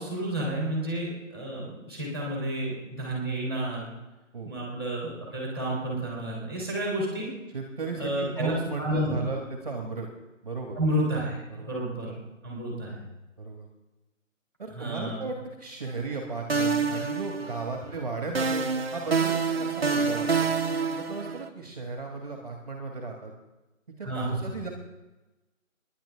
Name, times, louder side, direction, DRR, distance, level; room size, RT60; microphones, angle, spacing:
voice 1, 0.0-3.9 4.4-7.3 8.0-9.2 10.7-12.1 12.4-13.0 14.7-15.3 24.0-24.4, right 1 dB, 5° left, -5 dB, 2.8 m, -31 dB
voice 2, 7.5-10.1 10.4-10.8 11.5-11.7 13.4-13.7 14.6-20.5 20.9-23.3 24.0-24.7, right 3 dB, 30° right, 2 dB, 1.4 m, -35 dB
sound 1, 15.9-16.2 16.5-17.9 18.4-21.5, right 5 dB, 50° right, 0.9 m, -27 dB
27.5 x 10.5 x 3.4 m, 1.1 s
figure-of-eight pair, 170°, 40 cm